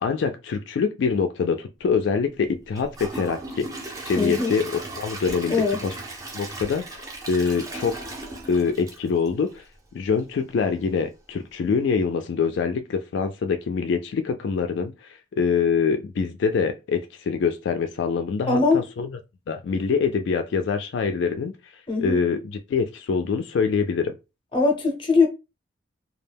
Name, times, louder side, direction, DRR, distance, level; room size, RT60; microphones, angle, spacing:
voice 1, 0.0-4.7 5.0-6.0 6.3-8.1 8.5-9.6 9.9-19.2 19.5-21.5 22.0-24.1, left 5 dB, 70° left, 0.3 m, -25 dB
Gurgling / Toilet flush / Trickle dribble, 2.7-9.8 10.2-10.3 10.8-10.9, right 2 dB, 20° right, 0.5 m, -37 dB
voice 2, 4.2-4.5 5.5-5.8 18.5-18.9 21.9-22.2 24.5-25.3, left 3 dB, 25° left, 0.6 m, -21 dB
2.3 x 2.1 x 3.3 m
head